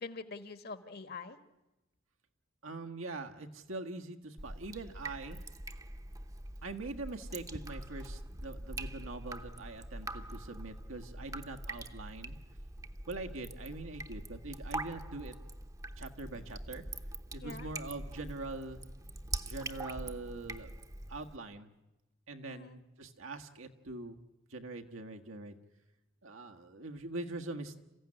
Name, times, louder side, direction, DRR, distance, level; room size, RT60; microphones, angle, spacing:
voice 1, 0.0-1.4 16.3-16.4 17.4-17.7 22.4-22.8, left 4 dB, 50° left, 11 dB, 1.5 m, -45 dB
voice 2, 2.6-5.4 6.6-12.4 13.1-15.4 16.0-16.8 17.3-18.8 19.4-20.8 21.1-21.7 22.3-24.2 24.5-25.5 26.2-27.8, right 2 dB, 85° right, 5 dB, 1.6 m, -43 dB
Drip, 4.4-21.4, right 2 dB, 15° right, 0.8 m, -44 dB
28.0 x 15.5 x 9.9 m, 1.0 s
head